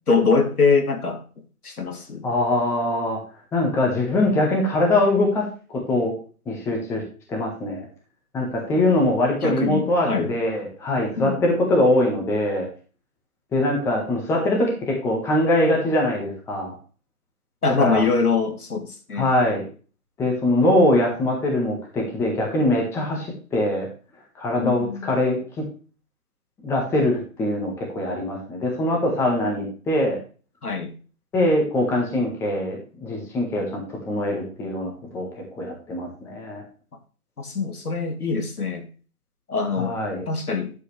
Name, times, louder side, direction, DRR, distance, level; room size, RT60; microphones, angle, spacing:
voice 1, 0.1-1.2 1.6-2.3 9.4-10.3 11.2-11.4 17.6-19.3 24.6-25.1 30.6-30.9 37.4-38.8 39.5-39.9 40.3-40.7, left 4 dB, 80° left, 4 dB, 2.9 m, -23 dB
voice 2, 2.2-3.2 3.5-5.4 5.7-6.1 6.5-7.0 7.3-7.9 8.3-12.7 13.5-16.7 17.8-18.0 19.1-19.6 20.2-23.9 24.4-25.4 26.6-30.2 31.3-35.3 35.5-36.6 39.8-40.2, left 1 dB, 5° left, 0 dB, 1.4 m, -22 dB
11.5 x 7.7 x 3.3 m, 0.37 s
hypercardioid pair, 150°, 45 cm